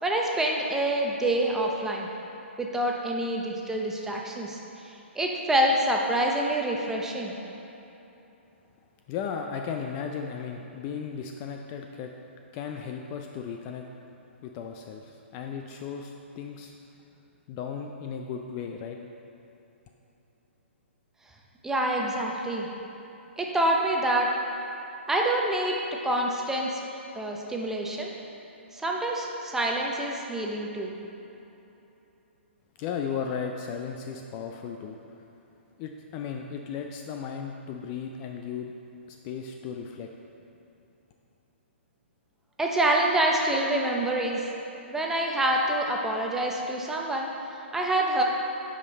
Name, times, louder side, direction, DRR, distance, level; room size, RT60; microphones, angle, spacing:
voice 1, 0.0-2.1 2.6-4.9 5.2-7.3 21.6-22.7 23.4-24.3 25.1-25.8 26.0-26.8 27.1-28.1 28.7-30.9 42.6-44.4 44.9-47.3 47.7-48.2, right 1 dB, 5° right, -1 dB, 0.7 m, -26 dB
voice 2, 9.1-12.1 12.5-13.8 14.4-16.7 17.5-19.0 32.8-35.0 35.8-38.7 39.1-40.1, left 6 dB, 30° left, 3 dB, 0.4 m, -35 dB
8.3 x 5.2 x 4.1 m, 3.0 s
hypercardioid pair, 135°, 7 cm